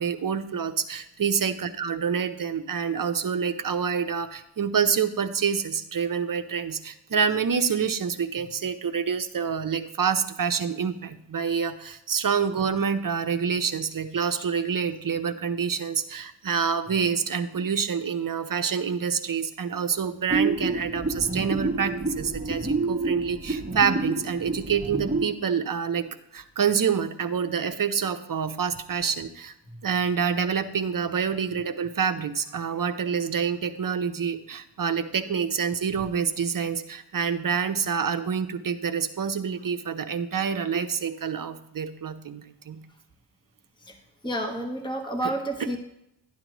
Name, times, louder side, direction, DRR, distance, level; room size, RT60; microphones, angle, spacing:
voice 1, 0.0-26.1 26.3-29.5 29.8-42.8, right 6 dB, 45° right, 9 dB, 0.8 m, -27 dB
sound 1, 20.3-25.3, right 3 dB, 15° right, 1.2 m, -28 dB
voice 2, 44.2-45.8, right 1 dB, 10° left, 4 dB, 1.2 m, -30 dB
12.5 x 9.5 x 3.0 m, 0.84 s
cardioid pair, 85°, 47 cm